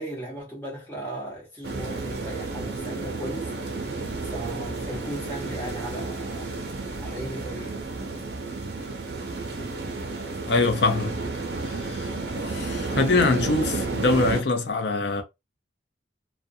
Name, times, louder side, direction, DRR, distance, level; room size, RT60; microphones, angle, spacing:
voice 1, 0.0-3.5 4.2-6.5 7.0-7.8, right 1 dB, 10° left, 1.1 m, -36 dB
sound 1, 1.6-14.4, right 3 dB, 55° right, 0.6 m, -32 dB
voice 2, 10.5-11.2 11.6-12.1 12.4-15.2, left 3 dB, 65° left, 0.6 m, -23 dB
2.4 x 2.2 x 2.6 m
head